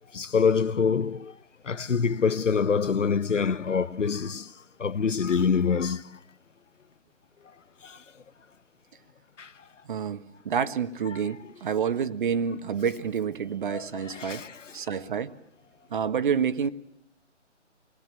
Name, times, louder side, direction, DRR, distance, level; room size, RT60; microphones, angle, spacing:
voice 1, 0.1-1.3 1.7-4.5 4.8-6.0 7.8-8.0 9.4-9.5 11.1-11.2 13.7-14.7, left 6 dB, 90° left, 0.9 m, -25 dB
voice 2, 9.9-14.5 14.7-15.3 15.9-16.7, right 7 dB, 45° right, 1.4 m, -28 dB
27.5 x 20.5 x 7.5 m
figure-of-eight pair, 150°, 36 cm